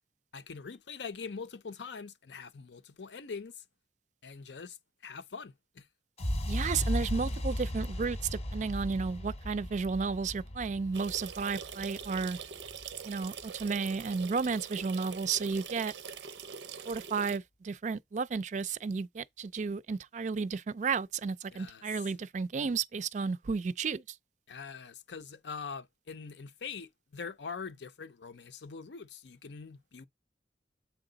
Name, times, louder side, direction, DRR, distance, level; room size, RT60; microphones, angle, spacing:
voice 1, 0.3-3.6 4.2-4.8 5.0-5.9 21.5-21.8 24.5-30.1, left 5 dB, 80° left, 0.6 m, -43 dB
sound 1, 6.2-14.1, equal, 35° left, 0.6 m, -37 dB
voice 2, 6.5-12.4 13.0-15.9 16.9-24.2, right 5 dB, 45° right, 0.3 m, -33 dB
sound 2, 10.9-17.4, right 6 dB, 85° right, 0.6 m, -44 dB
7.8 x 4.8 x 3.9 m
head